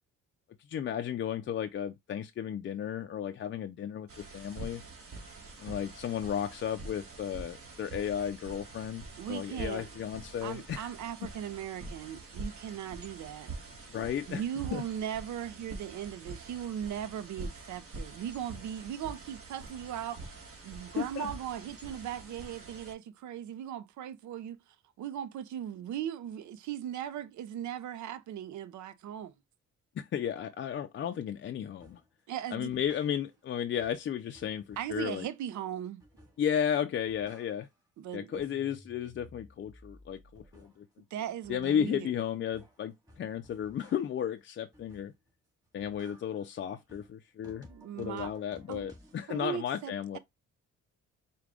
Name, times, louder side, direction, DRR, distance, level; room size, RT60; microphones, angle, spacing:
voice 1, 0.7-4.8 5.6-10.9 13.9-14.4 14.7-14.8 21.0-21.3 30.0-32.0 32.5-35.3 36.4-37.7 38.1-40.9 41.5-45.1 45.7-47.7 47.9-50.2, left 9 dB, 40° left, 0.4 m, -34 dB
sound 1, 4.1-22.9, right 3 dB, 50° right, 1.5 m, -46 dB
voice 2, 9.2-9.9 10.4-13.5 14.3-24.6 25.0-29.3 32.3-32.8 34.8-36.0 38.0-38.4 41.1-42.1 47.7-48.3 48.7-48.9 49.3-50.2, right 10 dB, 70° right, 0.6 m, -38 dB
sound 2, 31.8-32.1 32.5-33.5 33.8-35.6 36.0-36.6 36.9-37.9 38.2-40.9 41.3-44.3 44.7-45.3 45.6-49.2, equal, 10° right, 1.9 m, -57 dB
4.7 x 2.3 x 3.7 m
cardioid pair, 90°, 30 cm